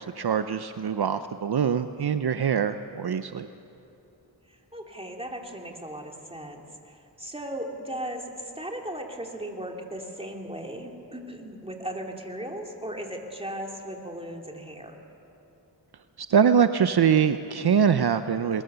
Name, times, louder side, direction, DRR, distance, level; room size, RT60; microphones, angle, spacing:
voice 1, 0.0-3.5 16.2-18.6, right 7 dB, 65° right, 11 dB, 0.7 m, -23 dB
voice 2, 4.5-15.0, right 1 dB, 15° right, 1 dB, 2.8 m, -37 dB
21.0 x 20.5 x 6.9 m, 2.8 s
cardioid pair, 45°, 42 cm